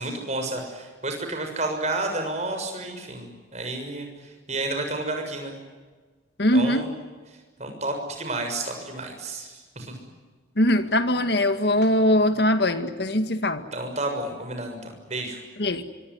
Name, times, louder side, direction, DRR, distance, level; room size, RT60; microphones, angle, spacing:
voice 1, 0.0-4.1 4.5-5.5 6.5-6.9 7.6-9.9 13.7-15.4, right 2 dB, 35° right, 4 dB, 6.7 m, -31 dB
voice 2, 6.4-6.9 10.6-13.6 15.6-15.8, left 1 dB, 55° left, 9 dB, 2.0 m, -21 dB
25.0 x 25.0 x 9.6 m, 1.4 s
head